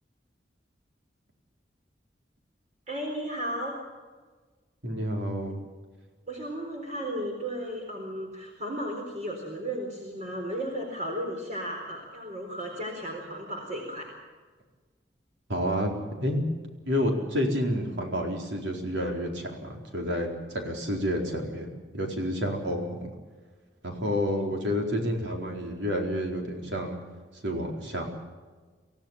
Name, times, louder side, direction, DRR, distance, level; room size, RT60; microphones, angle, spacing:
voice 1, 2.9-3.7 6.3-14.1, equal, 45° right, 1 dB, 4.1 m, -34 dB
voice 2, 4.8-5.6 15.5-16.5 16.9-21.7 21.9-23.1 23.8-27.0 27.4-28.0, equal, 85° right, 2 dB, 4.4 m, -29 dB
25.0 x 16.0 x 7.4 m, 1.4 s
head